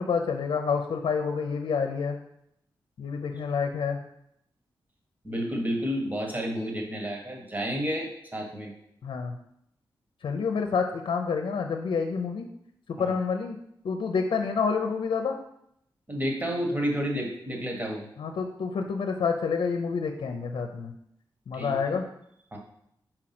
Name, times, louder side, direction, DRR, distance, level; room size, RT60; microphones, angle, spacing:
voice 1, 0.0-2.2 3.0-4.0 9.0-9.3 10.2-12.5 12.9-13.6 13.8-15.4 18.2-20.9 21.5-22.0, left 5 dB, 80° left, 4 dB, 0.6 m, -28 dB
voice 2, 5.2-8.7 13.0-13.1 16.1-18.0 21.5-21.9 22.5-22.6, equal, 20° right, 0 dB, 1.5 m, -30 dB
4.9 x 4.5 x 6.0 m, 0.74 s
wide cardioid pair, 95°, 8 cm